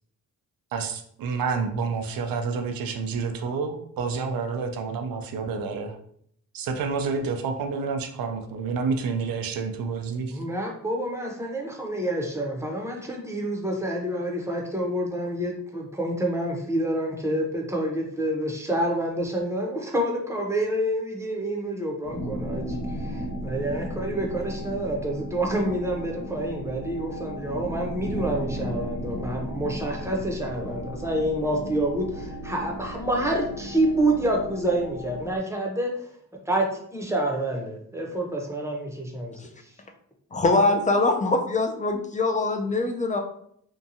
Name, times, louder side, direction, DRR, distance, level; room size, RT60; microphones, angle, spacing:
voice 1, 0.7-6.0 6.5-10.4, right 5 dB, 75° right, 5 dB, 0.5 m, -29 dB
voice 2, 10.3-35.9 36.5-39.5, right 1 dB, 10° right, 0 dB, 0.7 m, -28 dB
sound 1, 22.0-35.4, equal, 70° left, 0.8 m, -35 dB
voice 3, 40.3-43.2, left 2 dB, 20° left, 4 dB, 0.4 m, -23 dB
2.8 x 2.2 x 2.6 m, 0.66 s
cardioid pair, 85°, 35 cm